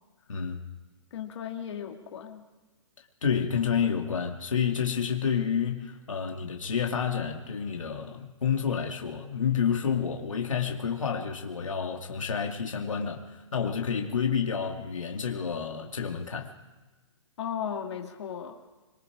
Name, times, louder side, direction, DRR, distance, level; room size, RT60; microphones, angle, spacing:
voice 1, 0.3-0.6 3.2-16.5, left 7 dB, 90° left, 2 dB, 2.6 m, -29 dB
voice 2, 1.1-2.4 17.4-18.6, left 8 dB, 60° left, 3 dB, 2.7 m, -36 dB
25.0 x 22.5 x 5.0 m, 1.2 s
hypercardioid pair, 140°, 16 cm